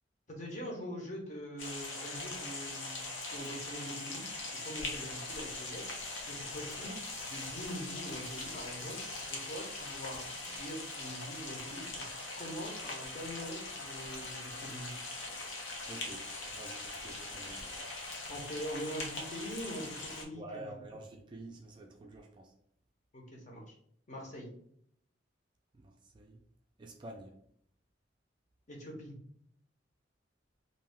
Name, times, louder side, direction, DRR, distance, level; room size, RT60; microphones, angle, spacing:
voice 1, 0.3-3.0 3.3-4.3 4.6-5.8 6.3-6.9 7.3-9.0 9.3-12.0 12.4-14.9 18.3-20.7 23.1-23.8 24.1-24.5 28.7-29.2, equal, 40° left, 0.8 m, -43 dB
sound 1, 1.6-20.2, left 2 dB, 90° left, 0.7 m, -41 dB
voice 2, 15.9-17.7 20.3-22.5 25.7-26.4 26.8-27.4, right 2 dB, 25° right, 0.3 m, -49 dB
2.7 x 2.3 x 3.3 m
head